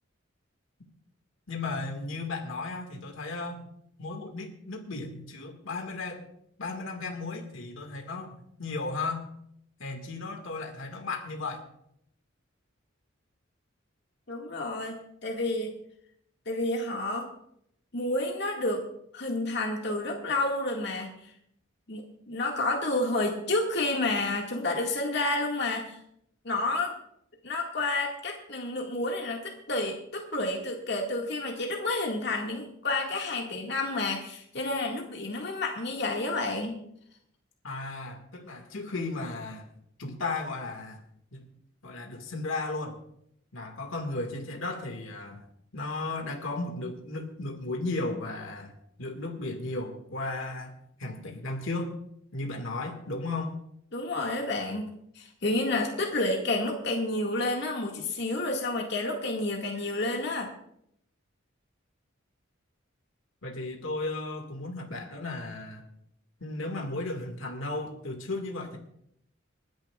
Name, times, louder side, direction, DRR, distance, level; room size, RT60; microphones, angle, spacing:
voice 1, 1.5-3.7 4.0-6.2 6.6-9.3 9.8-11.7 37.6-39.7 40.0-41.0 41.3-41.5 41.8-43.0 43.5-45.5 45.7-48.7 49.0-52.0 52.3-53.6 63.4-65.8 66.4-68.8, left 2 dB, 80° left, 3 dB, 2.0 m, -35 dB
voice 2, 14.3-15.7 16.5-17.3 17.9-18.8 19.1-21.1 21.9-26.0 26.4-26.9 27.4-36.8 53.9-60.5, left 2 dB, 55° left, 0 dB, 2.0 m, -30 dB
29.0 x 10.5 x 2.4 m, 0.73 s
head